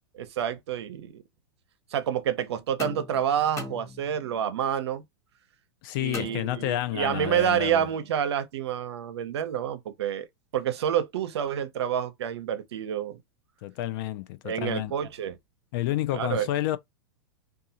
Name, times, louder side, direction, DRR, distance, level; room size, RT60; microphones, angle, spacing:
voice 1, 0.1-1.2 1.9-5.0 6.0-10.3 10.5-13.2 14.4-15.4 16.1-16.5, right 9 dB, 80° right, 0.6 m, -28 dB
sound 1, 2.8-4.4 6.1-7.1, left 3 dB, 20° left, 0.8 m, -40 dB
voice 2, 5.8-7.8 13.6-14.9 15.7-16.8, left 14 dB, 55° left, 0.4 m, -30 dB
2.7 x 2.3 x 2.7 m
hypercardioid pair, 125°, 14 cm